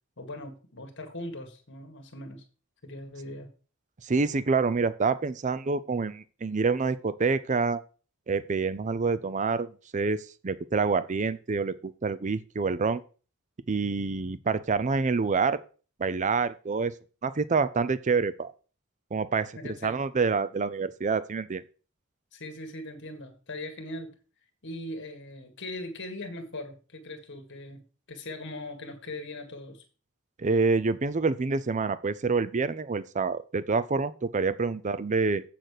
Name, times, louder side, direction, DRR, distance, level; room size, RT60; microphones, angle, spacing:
voice 1, 0.2-2.4 2.8-3.5 19.6-20.0 22.3-24.1 24.6-29.8, left 1 dB, 55° left, 5 dB, 1.9 m, -40 dB
voice 2, 4.0-7.8 8.3-13.0 13.7-15.6 16.0-16.9 17.2-18.5 19.1-21.6 30.4-35.4, right 4 dB, 35° right, 15 dB, 0.5 m, -27 dB
7.7 x 6.5 x 6.6 m, 0.37 s
head